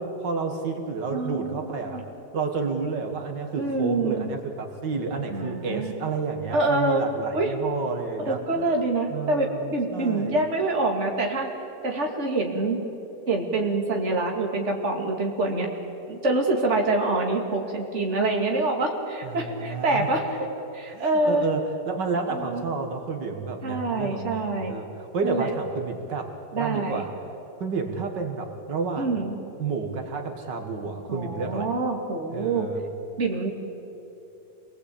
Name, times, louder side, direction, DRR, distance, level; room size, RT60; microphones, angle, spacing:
voice 1, 0.0-2.1 2.3-8.7 9.1-10.4 19.2-20.1 20.9-27.1 27.6-29.3 29.6-31.8 32.3-32.8, right 4 dB, 80° right, 5 dB, 2.3 m, -30 dB
voice 2, 1.1-2.0 3.6-4.3 5.3-5.9 6.5-7.0 7.3-7.5 8.3-11.5 11.8-12.8 13.3-15.7 16.1-20.4 20.7-21.4 22.3-22.6 23.6-24.8 25.2-25.5 26.5-27.0 29.0-29.4 31.1-32.7 33.2-33.5, right 2 dB, 40° right, 1 dB, 2.7 m, -26 dB
26.5 x 20.0 x 8.6 m, 3.0 s
omnidirectional pair, 1.9 m